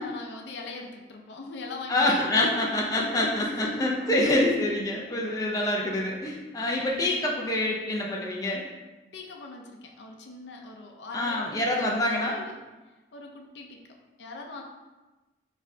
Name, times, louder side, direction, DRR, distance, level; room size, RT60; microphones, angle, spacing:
voice 1, 0.0-2.1 3.7-4.5 9.1-12.6 13.1-14.6, left 3 dB, 70° left, 2 dB, 0.6 m, -42 dB
voice 2, 1.9-8.6 11.1-12.4, left 1 dB, 20° left, -2 dB, 0.5 m, -26 dB
4.8 x 4.1 x 2.7 m, 1.1 s
head